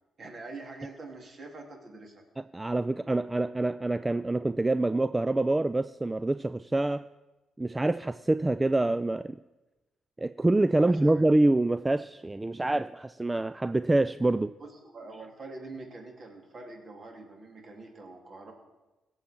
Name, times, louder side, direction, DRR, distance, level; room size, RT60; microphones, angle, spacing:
voice 1, 0.2-2.2 10.8-11.2 14.6-18.5, right 3 dB, 50° right, 2 dB, 2.7 m, -45 dB
voice 2, 2.4-7.0 7.6-9.4 10.2-14.5, right 2 dB, 20° right, 13 dB, 0.3 m, -26 dB
17.0 x 7.2 x 4.4 m, 1.1 s
supercardioid pair, 65°, 0 cm